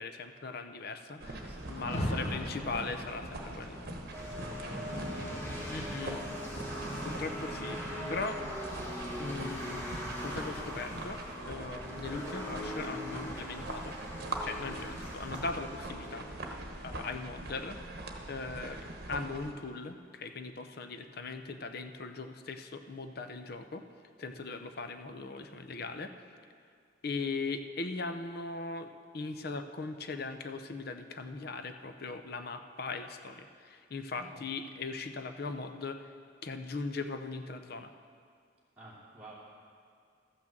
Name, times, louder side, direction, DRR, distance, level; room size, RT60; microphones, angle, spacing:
voice 1, 0.0-3.8 5.7-6.2 7.0-8.4 9.2-9.9 10.2-14.0 14.4-16.4 16.8-17.8 18.3-23.8 24.2-26.1 27.0-36.1 36.4-37.9, left 3 dB, 55° left, 8 dB, 0.7 m, -39 dB
sound 1, 1.2-19.5, right 2 dB, 50° right, 1.2 m, -43 dB
voice 2, 1.4-3.0 4.2-7.1 34.1-34.4 38.8-39.3, equal, 10° right, -8 dB, 2.6 m, -52 dB
Rain, 1.6-10.7, equal, 35° left, 1.5 m, -42 dB
sound 2, 4.1-17.2, equal, 10° left, 1.9 m, -41 dB
13.5 x 6.2 x 7.4 m, 2.2 s
head